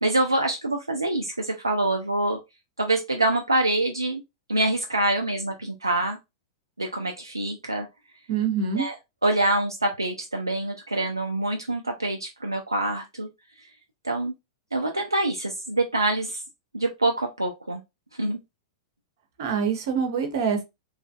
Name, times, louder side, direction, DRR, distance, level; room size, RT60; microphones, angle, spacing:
voice 1, 0.0-2.4 2.8-4.2 4.5-6.2 6.8-7.9 8.8-8.9 9.2-13.3 14.0-14.3 14.7-16.4 16.7-17.8 18.2-18.4, right 2 dB, 90° right, 0.4 m, -25 dB
voice 2, 8.3-8.9 19.4-20.6, right 6 dB, 55° right, 0.8 m, -25 dB
3.1 x 2.4 x 2.3 m
figure-of-eight pair, 100°, 2 cm